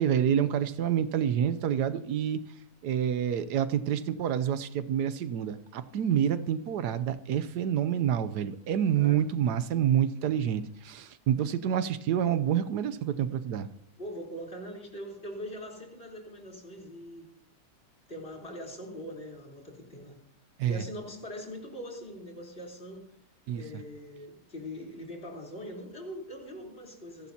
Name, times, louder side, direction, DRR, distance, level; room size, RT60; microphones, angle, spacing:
voice 1, 0.0-2.4 2.8-13.7 20.6-20.8 23.5-23.6, right 9 dB, 80° right, 13 dB, 1.3 m, -28 dB
voice 2, 14.0-17.3 18.1-20.2 20.6-23.0 23.5-27.3, equal, 35° left, 0 dB, 4.0 m, -42 dB
27.5 x 11.5 x 2.8 m, 0.70 s
omnidirectional pair, 1.7 m